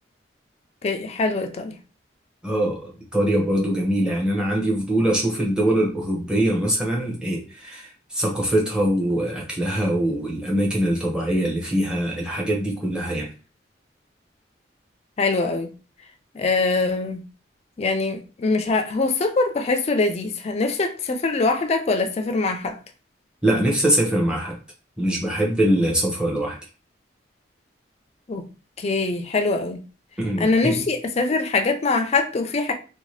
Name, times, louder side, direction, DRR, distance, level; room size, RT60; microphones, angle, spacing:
voice 1, 0.8-1.7 15.2-15.7 16.3-17.2 17.8-22.8 28.3-28.5 28.8-29.8 30.4-32.7, left 3 dB, 35° left, 0.4 m, -23 dB
voice 2, 2.4-13.3 23.4-24.6 25.0-26.6 30.2-30.8, right 1 dB, 5° right, 0.7 m, -23 dB
2.7 x 2.2 x 3.1 m
head